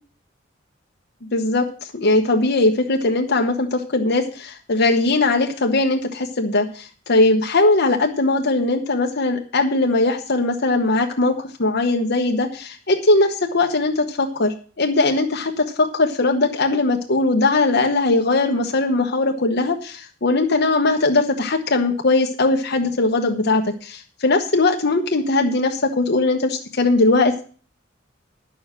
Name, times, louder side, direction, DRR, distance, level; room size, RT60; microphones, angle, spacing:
voice 1, 1.3-1.7 1.9-27.4, left 2 dB, 55° left, 3 dB, 1.1 m, -20 dB
10.0 x 6.7 x 7.4 m, 0.40 s
head